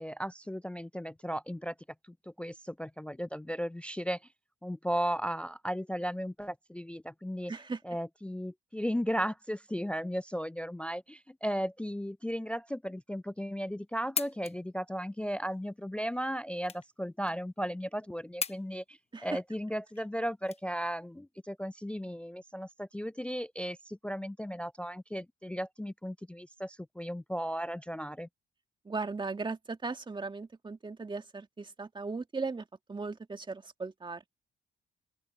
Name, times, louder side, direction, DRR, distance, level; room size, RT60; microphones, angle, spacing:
voice 1, 0.0-1.7 2.3-4.2 4.6-7.5 7.8-28.3, equal, 5° left, 0.3 m, -35 dB
voice 2, 7.5-7.8 19.1-19.3 28.9-34.3, right 4 dB, 25° right, 1.9 m, -37 dB
sound 1, 13.8-21.2, left 6 dB, 30° left, 0.8 m, -41 dB
open air
cardioid pair, 90°, 20 cm